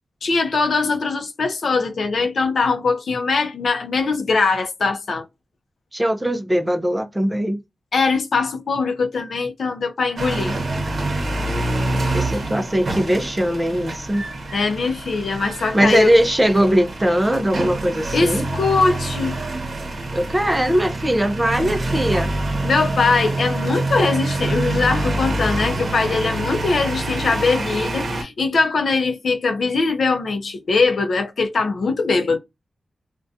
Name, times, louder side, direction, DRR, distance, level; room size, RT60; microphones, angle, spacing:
voice 1, 0.2-5.2 7.9-10.6 14.5-16.1 18.1-19.4 22.6-32.4, left 4 dB, 70° left, 0.5 m, -21 dB
voice 2, 5.9-7.6 12.1-14.3 15.7-18.5 20.1-22.3, equal, 15° right, 0.4 m, -20 dB
sound 1, 10.2-28.2, right 2 dB, 55° right, 0.8 m, -26 dB
2.4 x 2.1 x 2.6 m
wide cardioid pair, 105°, 0 cm